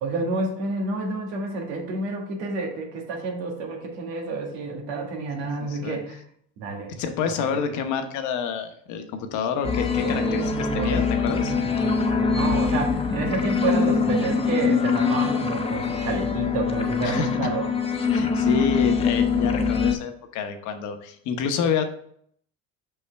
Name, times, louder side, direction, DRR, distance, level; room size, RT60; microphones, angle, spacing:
voice 1, 0.0-6.2 6.6-6.9 10.0-17.6, right 3 dB, 85° right, 0 dB, 1.9 m, -29 dB
voice 2, 5.4-6.0 6.7-11.5 17.0-17.4 18.1-21.8, left 6 dB, 65° left, 6 dB, 1.1 m, -28 dB
sound 1, 9.6-19.9, left 5 dB, 20° left, 0.8 m, -23 dB
5.6 x 5.6 x 3.4 m, 0.64 s
supercardioid pair, 105°, 32 cm